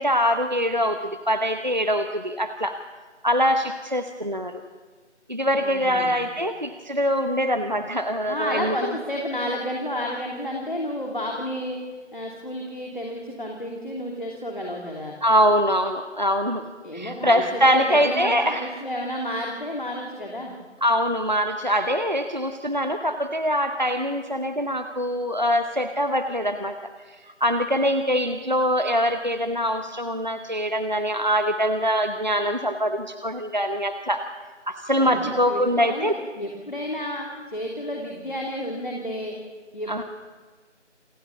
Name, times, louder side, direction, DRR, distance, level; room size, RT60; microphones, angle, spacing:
voice 1, 0.0-2.8 3.2-4.6 5.3-8.8 15.2-18.7 20.8-26.7 27.4-34.2 34.7-36.1 39.9-40.0, equal, 40° right, 8 dB, 0.9 m, -23 dB
voice 2, 5.6-6.2 8.3-11.8 12.1-15.2 16.8-20.5 35.0-39.3 39.7-40.0, equal, 45° left, 0 dB, 2.9 m, -31 dB
28.5 x 17.5 x 7.0 m, 1.4 s
figure-of-eight pair, 180°, 36 cm